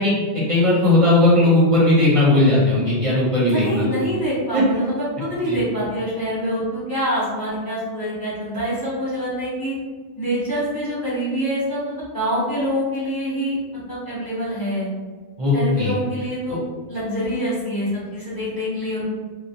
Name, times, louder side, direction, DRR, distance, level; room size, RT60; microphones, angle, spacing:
voice 1, 0.0-3.8 4.5-4.6 5.5-5.6 15.4-15.9 16.5-16.6, left 2 dB, 35° right, -7 dB, 0.5 m, -17 dB
voice 2, 3.5-9.7 10.2-13.6 13.9-14.9 15.5-16.6 16.9-19.0, equal, 20° left, -10 dB, 0.8 m, -25 dB
2.3 x 2.0 x 2.7 m, 1.4 s
omnidirectional pair, 1.2 m